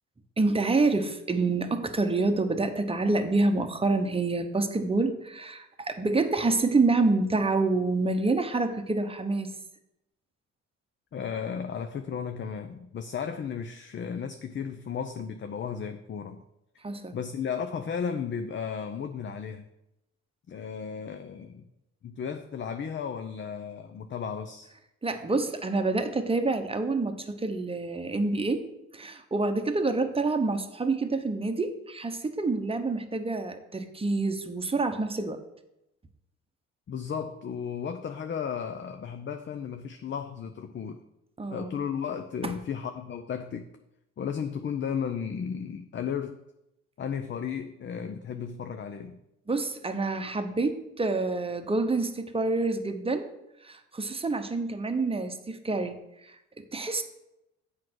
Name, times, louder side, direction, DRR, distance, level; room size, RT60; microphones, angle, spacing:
voice 1, 0.4-9.5 16.8-17.2 25.0-28.6 28.9-35.4 41.4-41.8 42.4-42.5 49.5-53.3 53.6-57.0, right 3 dB, 20° right, 7 dB, 0.9 m, -27 dB
voice 2, 11.1-16.4 17.1-19.7 20.5-21.7 22.0-24.7 36.9-41.0 41.5-43.7 44.2-46.4 47.0-49.2, left 7 dB, 40° left, 7 dB, 0.6 m, -34 dB
7.5 x 4.8 x 6.2 m, 0.87 s
cardioid pair, 90°, 30 cm